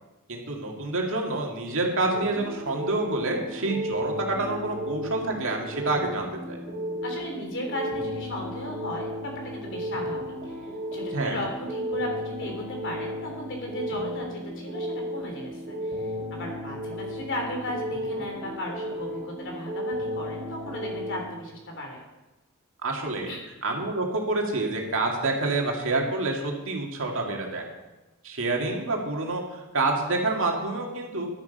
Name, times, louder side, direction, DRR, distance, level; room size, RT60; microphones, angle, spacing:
voice 1, 0.3-6.6 11.1-11.4 22.8-23.3 23.6-27.6 28.2-31.3, right 2 dB, 65° right, 0 dB, 2.3 m, -28 dB
sound 1, 2.1-21.2, equal, 40° right, 3.1 m, -34 dB
voice 2, 7.0-22.0 23.2-23.5, left 1 dB, 60° left, 1 dB, 3.4 m, -36 dB
11.5 x 11.0 x 5.5 m, 1.1 s
head